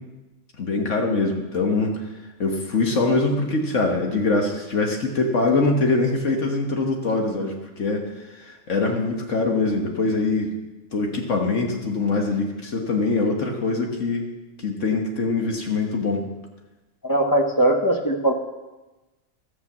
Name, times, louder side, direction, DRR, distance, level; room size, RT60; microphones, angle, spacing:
voice 1, 0.6-2.0 2.4-10.5 10.9-14.3 14.6-16.2, left 3 dB, 70° left, 1 dB, 1.7 m, -23 dB
voice 2, 17.0-18.3, right 1 dB, 15° left, 4 dB, 0.9 m, -20 dB
13.5 x 7.4 x 7.3 m, 1.1 s
omnidirectional pair, 1.3 m